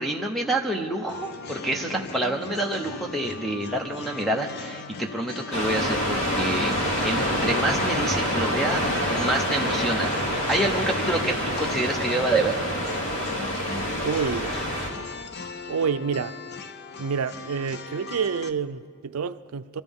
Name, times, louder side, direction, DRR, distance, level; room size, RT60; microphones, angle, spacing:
voice 1, 0.0-10.1 10.5-12.5, right 2 dB, ahead, 0.8 m, -27 dB
sound 1, 1.1-18.5, left 4 dB, 50° left, 0.6 m, -39 dB
sound 2, 5.5-14.9, equal, 80° left, 2.4 m, -26 dB
voice 2, 14.0-14.6 15.7-16.4 17.0-19.8, right 6 dB, 75° right, 0.5 m, -28 dB
25.0 x 13.5 x 3.6 m
head